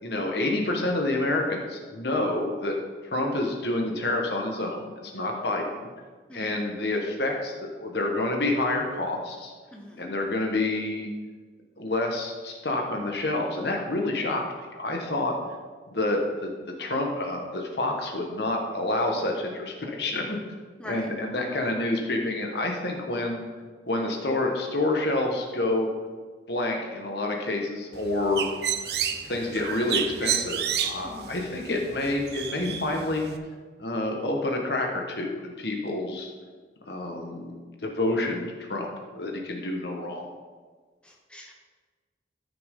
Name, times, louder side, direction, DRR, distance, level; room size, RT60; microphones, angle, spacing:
voice 1, 0.0-2.7 3.0-5.9 6.3-9.5 10.0-11.1 11.8-14.4 14.7-15.3 15.9-16.5 16.8-20.4 20.8-23.5 23.9-25.9 26.5-28.5 29.2-33.3 33.8-36.3 36.9-40.3, left 2 dB, 70° left, 1 dB, 1.4 m, -28 dB
voice 2, 9.7-10.0 20.8-21.1 31.0-31.3 41.0-41.6, left 1 dB, 5° left, -1 dB, 1.0 m, -42 dB
Bird, 27.9-33.4, right 8 dB, 65° right, 0.6 m, -31 dB
13.5 x 5.8 x 3.7 m, 1.4 s
head